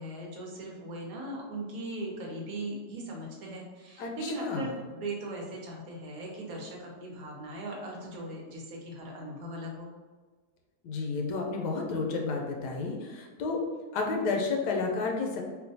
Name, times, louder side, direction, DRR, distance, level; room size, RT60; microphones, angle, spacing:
voice 1, 0.0-9.9, right 1 dB, 65° right, -1 dB, 1.1 m, -39 dB
voice 2, 4.0-4.7 10.8-13.6 13.9-15.4, left 4 dB, 90° left, 1 dB, 1.2 m, -31 dB
4.4 x 2.2 x 2.7 m, 1.4 s
omnidirectional pair, 1.8 m